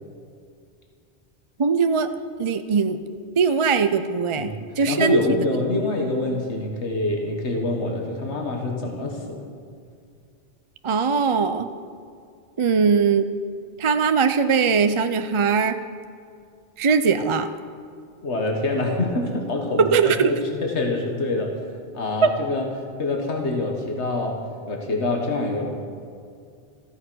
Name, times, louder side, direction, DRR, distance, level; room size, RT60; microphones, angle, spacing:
voice 1, 1.6-2.1 2.4-3.0 3.4-5.4 10.8-11.7 12.6-13.3 13.8-15.8 16.8-17.5 19.8-20.3, right 5 dB, 40° right, 10 dB, 0.4 m, -20 dB
voice 2, 4.4-9.4 18.2-21.5 21.9-22.7 23.0-24.4 24.7-25.7, left 2 dB, 90° left, 1 dB, 1.8 m, -26 dB
14.5 x 13.5 x 6.2 m, 2.3 s
omnidirectional pair, 1.1 m